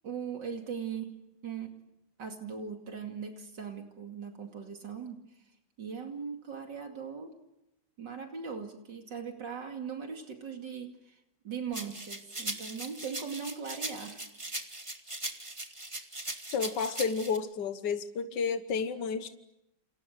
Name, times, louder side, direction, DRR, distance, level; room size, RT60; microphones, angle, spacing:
voice 1, 0.0-1.1 1.4-1.7 2.2-5.4 5.8-7.3 8.0-11.2 11.4-14.2, right 6 dB, 80° right, 4 dB, 3.1 m, -39 dB
sound 1, 11.7-17.4, right 2 dB, 15° right, 2.1 m, -39 dB
voice 2, 16.5-19.3, left 5 dB, 75° left, 9 dB, 1.9 m, -31 dB
29.5 x 28.5 x 6.7 m, 0.88 s
omnidirectional pair, 1.9 m